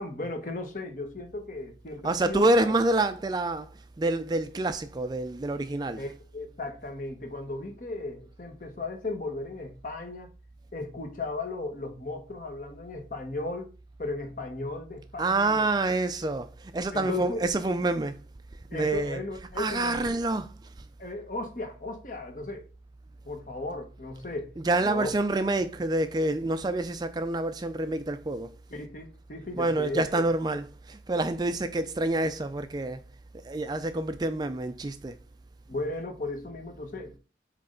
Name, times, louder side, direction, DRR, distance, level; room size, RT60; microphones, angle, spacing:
voice 1, 0.0-2.8 5.9-10.3 10.7-13.7 14.0-15.7 16.9-17.5 18.7-20.1 21.0-22.7 23.2-24.5 24.8-25.1 28.7-30.2 35.7-37.2, left 2 dB, 45° left, 1.1 m, -36 dB
voice 2, 2.0-6.1 15.2-18.2 18.7-19.2 19.5-20.9 24.6-28.6 29.6-33.0 33.4-35.2, right 2 dB, 25° right, 0.3 m, -27 dB
7.8 x 3.2 x 3.8 m
head